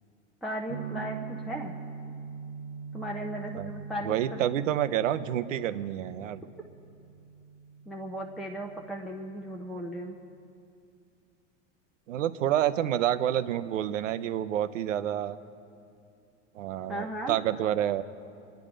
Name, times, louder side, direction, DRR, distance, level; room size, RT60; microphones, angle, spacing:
voice 1, 0.4-1.7 2.9-4.5 7.9-10.2 16.9-17.4, equal, ahead, -1 dB, 0.8 m, -36 dB
sound 1, 0.7-10.5, right 6 dB, 55° right, 0.9 m, -43 dB
voice 2, 4.0-6.4 12.1-15.4 16.5-18.0, right 11 dB, 90° right, 13 dB, 0.8 m, -28 dB
23.5 x 10.5 x 5.0 m, 2.5 s
supercardioid pair, 115°, 37 cm